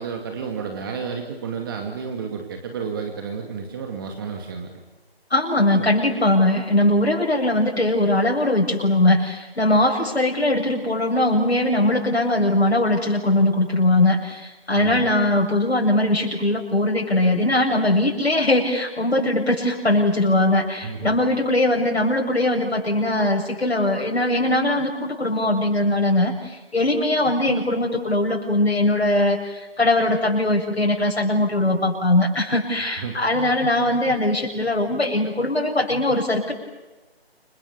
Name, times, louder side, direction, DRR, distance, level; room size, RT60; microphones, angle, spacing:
voice 1, 0.0-4.8 5.8-5.9 14.7-15.1 20.8-21.1 33.0-33.2, right 6 dB, 20° right, 3 dB, 2.4 m, -31 dB
voice 2, 5.3-36.5, left 1 dB, 90° left, -1 dB, 7.8 m, -20 dB
29.5 x 26.5 x 7.1 m, 1.1 s
figure-of-eight pair, 160°, 31 cm